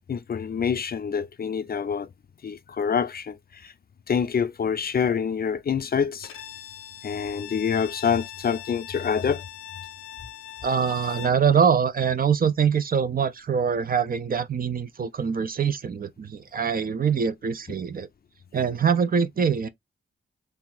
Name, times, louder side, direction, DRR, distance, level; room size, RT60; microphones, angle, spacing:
voice 1, 0.1-2.1 2.4-3.7 4.1-6.3 7.0-9.4, left 7 dB, 45° left, 0.5 m, -26 dB
Bowed string instrument, 6.2-11.4, left 12 dB, 90° left, 0.6 m, -41 dB
voice 2, 10.6-18.1 18.5-19.7, right 7 dB, 45° right, 0.5 m, -24 dB
2.7 x 2.3 x 3.7 m
cardioid pair, 60°, 21 cm